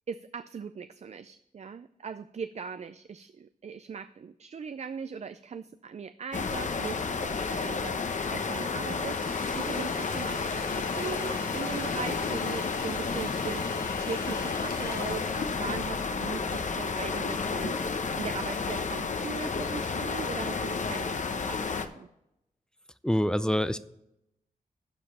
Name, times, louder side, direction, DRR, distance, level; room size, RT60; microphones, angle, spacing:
voice 1, 0.1-13.6 14.0-22.1, right 6 dB, 50° right, 12 dB, 0.4 m, -39 dB
sound 1, 6.3-21.9, left 4 dB, 55° left, 0.9 m, -31 dB
Domestic sounds home sounds, 9.1-16.2, left 4 dB, 80° left, 1.3 m, -43 dB
voice 2, 23.0-23.8, equal, 5° left, 14 dB, 0.5 m, -25 dB
11.5 x 5.1 x 5.5 m, 0.81 s
cardioid pair, 75°, 15 cm